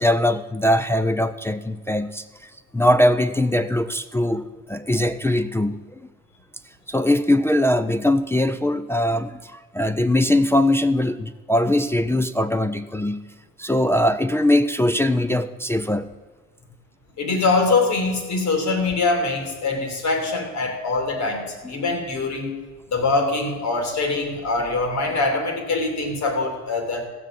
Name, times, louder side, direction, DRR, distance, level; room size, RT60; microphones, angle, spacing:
voice 1, 0.0-6.0 6.9-13.2 13.6-16.1, left 1 dB, 10° left, 8 dB, 0.5 m, -21 dB
voice 2, 17.2-22.6 22.9-27.1, left 3 dB, 65° left, 3 dB, 2.9 m, -23 dB
15.5 x 6.2 x 7.5 m, 1.4 s
cardioid pair, 90°, 30 cm